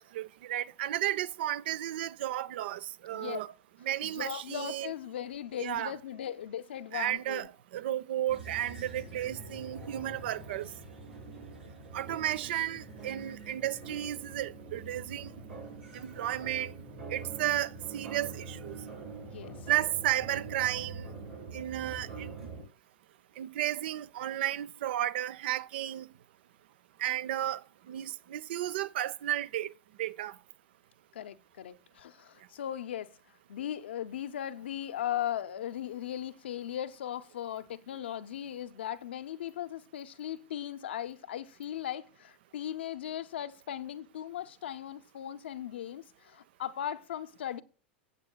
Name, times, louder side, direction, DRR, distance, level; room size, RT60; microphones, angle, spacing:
voice 1, 0.0-3.5 3.8-4.9 5.6-6.0 6.9-10.7 11.9-15.3 15.9-16.7 17.1-18.8 19.7-21.1 21.5-22.3 23.4-26.1 27.0-27.6 27.9-29.7 30.0-30.4, right 13 dB, 70° right, 0.4 m, -33 dB
voice 2, 4.0-7.5 19.2-19.6 31.1-33.1 33.5-47.6, left 11 dB, 80° left, 0.6 m, -38 dB
sound 1, 8.3-22.6, right 4 dB, 90° right, 6.1 m, -44 dB
14.0 x 8.2 x 2.2 m
hypercardioid pair, 100°, 6 cm